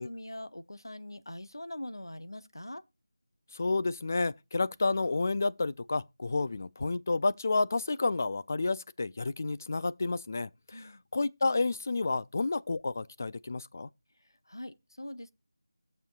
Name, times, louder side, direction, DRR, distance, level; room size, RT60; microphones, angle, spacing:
voice 1, 0.0-2.8 10.7-11.0 14.5-15.3, left 1 dB, 90° left, 0.9 m, -42 dB
voice 2, 3.5-13.9, left 3 dB, 40° left, 0.4 m, -30 dB
15.5 x 6.8 x 2.3 m
figure-of-eight pair, 165°, 2 cm